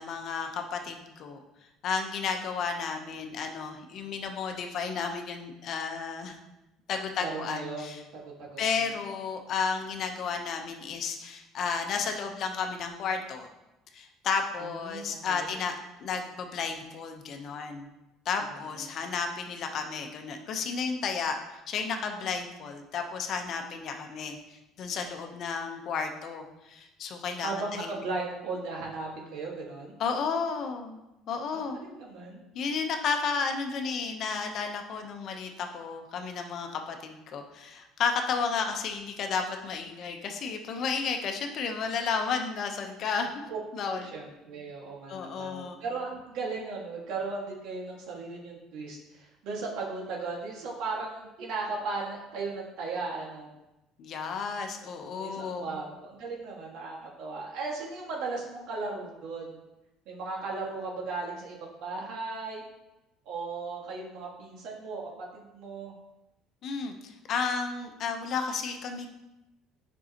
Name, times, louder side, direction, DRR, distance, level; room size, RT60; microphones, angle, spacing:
voice 1, 0.0-1.4 1.8-6.4 6.9-8.0 8.6-13.5 13.9-15.7 16.0-17.9 18.2-21.4 21.7-28.0 30.0-31.0 31.3-31.8 32.5-43.5 43.7-44.1 45.1-45.8 54.0-55.7 66.6-69.1, left 5 dB, 55° left, 5 dB, 0.9 m, -32 dB
voice 2, 7.2-8.8 14.6-15.5 18.4-18.9 27.4-29.9 31.5-32.4 43.5-43.6 43.9-53.5 55.2-59.6 60.1-62.6 63.3-65.9, right 3 dB, 70° right, -2 dB, 1.8 m, -37 dB
8.2 x 5.4 x 3.0 m, 0.94 s
cardioid pair, 105°, 0 cm